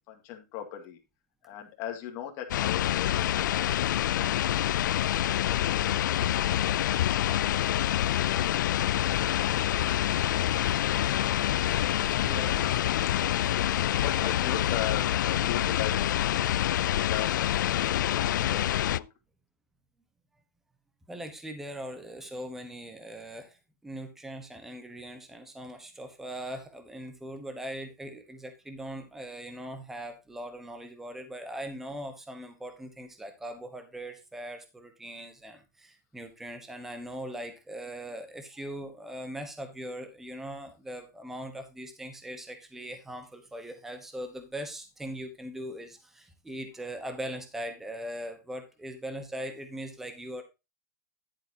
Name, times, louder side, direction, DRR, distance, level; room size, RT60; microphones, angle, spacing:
voice 1, 0.1-1.0 1.4-4.3 4.7-4.9 5.2-7.0 7.2-7.4 7.7-10.2 10.5-11.4 12.5-12.8 13.4-16.0 16.5-18.6 18.9-19.0, left 11 dB, 30° left, 3 dB, 2.2 m, -40 dB
sound 1, 2.5-19.0, left 12 dB, 85° left, 0.4 m, -27 dB
voice 2, 12.2-12.7 15.6-15.8 21.1-23.6 23.8-50.4, right 1 dB, 5° right, 7 dB, 1.0 m, -40 dB
11.0 x 8.9 x 2.8 m, 0.25 s
supercardioid pair, 175°, 10 cm